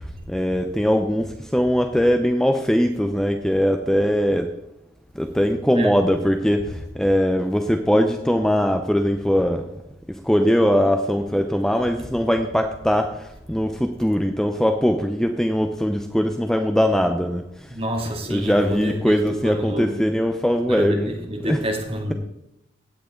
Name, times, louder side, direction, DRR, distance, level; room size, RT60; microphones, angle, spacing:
voice 1, 0.0-4.5 5.1-9.8 10.1-17.8 18.3-21.7, equal, 5° left, 0.6 m, -21 dB
voice 2, 17.7-20.0 20.7-22.1, right 1 dB, 30° right, 2.5 m, -28 dB
16.0 x 9.3 x 3.8 m
head